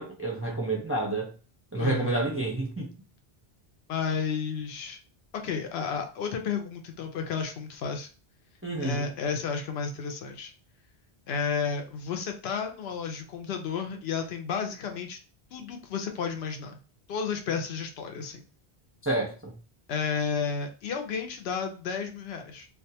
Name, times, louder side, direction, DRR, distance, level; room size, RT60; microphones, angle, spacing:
voice 1, 0.0-1.3 1.7-2.9 8.6-9.1 19.0-19.6, right 2 dB, 20° right, 0.4 m, -29 dB
voice 2, 1.8-2.1 3.9-5.0 5.3-8.1 8.8-10.5 11.3-15.2 15.5-16.8 17.1-18.4 19.9-22.7, left 6 dB, 80° left, 0.8 m, -32 dB
2.4 x 2.2 x 2.7 m
omnidirectional pair, 1.0 m